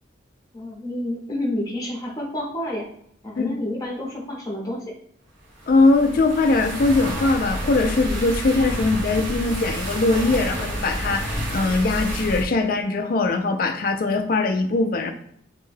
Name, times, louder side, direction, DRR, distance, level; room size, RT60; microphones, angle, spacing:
voice 1, 0.5-2.9 3.2-4.8, left 1 dB, 20° left, -3 dB, 0.8 m, -29 dB
sound 1, 5.6-12.4, equal, 80° right, 0.9 m, -29 dB
voice 2, 5.7-15.1, left 3 dB, 45° left, 6 dB, 0.4 m, -21 dB
2.6 x 2.2 x 3.2 m, 0.68 s
head